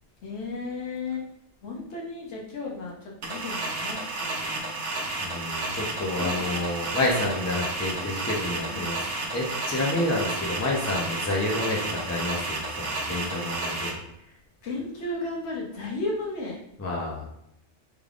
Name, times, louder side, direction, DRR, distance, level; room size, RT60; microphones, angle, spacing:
voice 1, 0.2-1.3 1.6-5.0 6.1-6.3 8.6-9.0 13.6-16.6, left 3 dB, 70° left, -3 dB, 1.2 m, -35 dB
sound 1, 3.2-13.9, right 2 dB, 70° right, 1.0 m, -32 dB
voice 2, 5.2-9.0 9.3-14.0 16.8-17.3, left 2 dB, 20° left, -2 dB, 0.5 m, -29 dB
3.6 x 3.4 x 2.4 m, 0.77 s
omnidirectional pair, 1.2 m